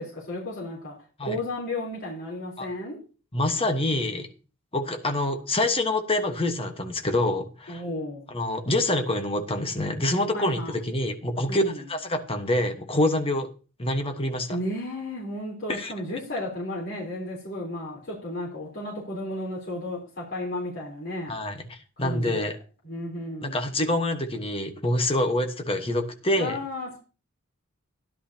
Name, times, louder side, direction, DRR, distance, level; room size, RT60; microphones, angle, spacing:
voice 1, 0.0-3.0 7.7-8.2 10.3-10.8 11.5-11.8 14.5-21.4 22.0-22.5 22.8-23.6 26.3-27.0, left 1 dB, 50° left, 3.7 m, -33 dB
voice 2, 3.3-4.3 4.7-7.8 8.3-13.5 13.8-14.6 15.7-15.9 21.3-22.5 23.4-26.6, left 1 dB, 25° left, 1.3 m, -26 dB
13.5 x 11.0 x 2.8 m
head